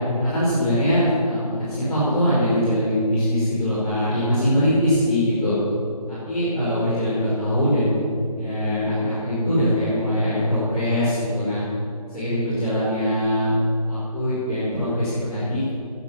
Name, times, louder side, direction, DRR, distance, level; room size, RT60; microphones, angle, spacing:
voice 1, 0.2-5.5 6.1-8.0 8.4-11.6 12.1-13.5 13.9-15.7, equal, 5° left, -19 dB, 3.5 m, -22 dB
10.5 x 8.3 x 9.8 m, 2.4 s
figure-of-eight pair, 175°, 20 cm